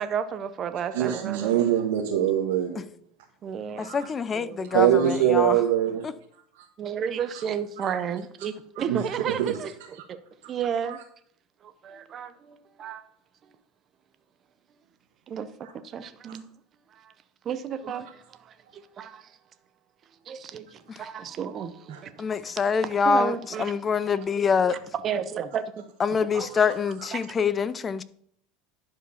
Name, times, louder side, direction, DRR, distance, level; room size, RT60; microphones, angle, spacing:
voice 1, 0.0-1.6 3.4-3.9 4.3-4.7 6.8-9.7 10.1-10.2 10.5-11.0 11.6-13.1 15.3-15.5 15.8-16.5 16.9-17.1 17.4-19.4 20.3-23.8 24.7-25.8 26.1-26.7 27.1-27.3, right 8 dB, 35° right, 0.7 m, -33 dB
voice 2, 0.9-2.8 3.8-4.1 4.7-6.1 6.5-6.6 7.8-8.0 8.8-9.6 10.8-11.0 21.9-22.0, right 10 dB, 85° right, 1.3 m, -24 dB
voice 3, 3.8-5.6 20.9-21.0 22.2-24.8 26.0-28.0, left 5 dB, 25° left, 0.5 m, -25 dB
11.0 x 4.9 x 5.6 m
supercardioid pair, 115°, 0 cm